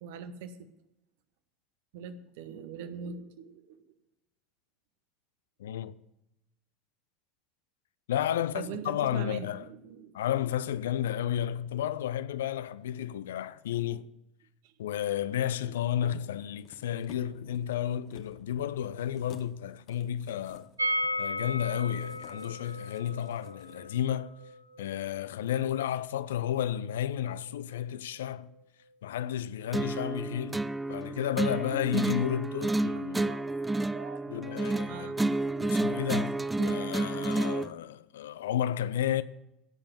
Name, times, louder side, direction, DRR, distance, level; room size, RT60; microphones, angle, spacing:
voice 1, 0.0-0.7 1.9-3.8 8.3-10.1 14.6-14.7 32.9-34.2 34.5-34.6 34.9-35.2, right 6 dB, 60° right, 1.1 m, -42 dB
voice 2, 5.6-6.0 8.1-9.7 10.1-14.1 14.8-20.7 21.2-24.4 24.8-28.5 29.0-30.6 30.9-33.4 34.3-39.2, left 10 dB, 70° left, 0.5 m, -32 dB
sound 1, 16.6-23.8 24.1-24.2, left 7 dB, 45° left, 1.3 m, -55 dB
sound 2, 20.8-26.6 26.8-26.9 27.2-27.3, equal, 85° right, 0.7 m, -36 dB
sound 3, 29.7-37.7, right 2 dB, 10° right, 0.5 m, -30 dB
16.0 x 6.8 x 7.0 m
figure-of-eight pair, 70°, 0 cm